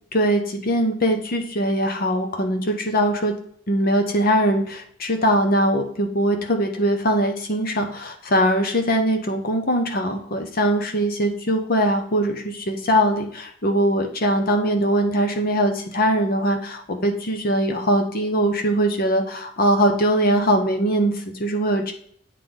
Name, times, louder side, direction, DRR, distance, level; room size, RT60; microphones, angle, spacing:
voice 1, 0.1-3.3 3.7-21.9, equal, 50° left, 4 dB, 0.9 m, -21 dB
8.9 x 3.3 x 3.7 m, 0.63 s
head